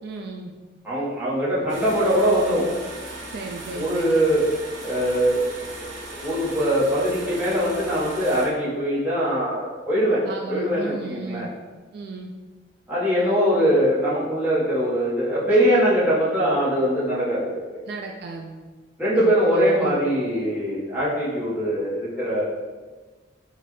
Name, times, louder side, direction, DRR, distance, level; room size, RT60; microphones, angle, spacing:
voice 1, 0.0-0.5 3.3-4.2 10.2-11.5 11.9-12.3 17.9-18.6 19.1-20.0, right 3 dB, 60° right, 1 dB, 0.3 m, -35 dB
voice 2, 0.8-2.7 3.7-4.4 4.8-11.4 12.9-17.8 19.0-22.4, equal, 10° right, -10 dB, 1.2 m, -22 dB
sound 1, 1.7-8.5, right 2 dB, 80° right, 0.9 m, -38 dB
4.1 x 2.5 x 3.1 m, 1.3 s
head